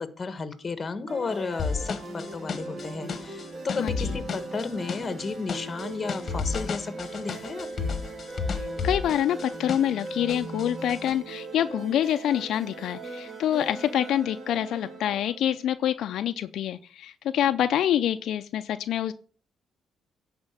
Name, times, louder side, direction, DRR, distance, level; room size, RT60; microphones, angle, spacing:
voice 1, 0.0-7.9, left 4 dB, 30° left, 11 dB, 1.4 m, -33 dB
sound 1, 1.1-15.6, right 2 dB, 35° right, 2.0 m, -39 dB
sound 2, 1.6-10.0 10.3-11.1, left 5 dB, 50° left, 1.2 m, -32 dB
voice 2, 3.8-4.2 8.6-19.1, left 11 dB, 75° left, 9 dB, 0.5 m, -26 dB
10.5 x 4.3 x 7.5 m, 0.41 s
cardioid pair, 90°, 0 cm